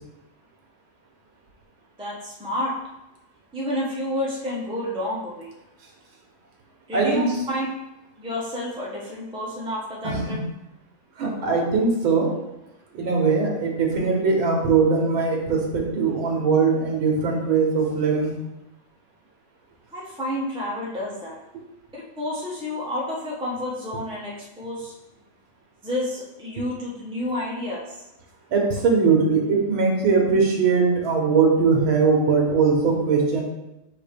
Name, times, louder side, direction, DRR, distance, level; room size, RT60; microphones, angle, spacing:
voice 1, 2.0-2.7 3.5-5.5 6.9-7.7 8.2-10.4 19.9-21.4 22.2-24.9 25.8-27.8, left 1 dB, 5° right, -6 dB, 0.5 m, -30 dB
voice 2, 6.9-7.4 10.0-10.4 11.2-12.3 12.9-18.3 26.6-26.7 28.5-33.4, right 4 dB, 85° right, 0 dB, 2.0 m, -21 dB
6.1 x 3.0 x 5.1 m, 0.93 s
omnidirectional pair, 2.1 m